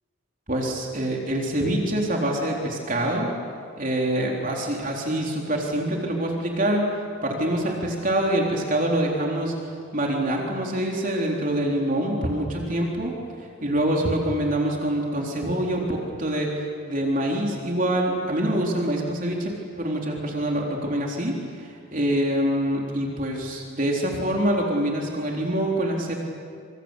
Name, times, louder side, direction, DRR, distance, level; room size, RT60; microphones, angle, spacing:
voice 1, 0.5-3.3 3.8-6.9 7.2-9.5 9.9-13.1 13.6-26.1, right 1 dB, 45° right, -1 dB, 3.8 m, -25 dB
26.5 x 26.5 x 8.3 m, 2.2 s
head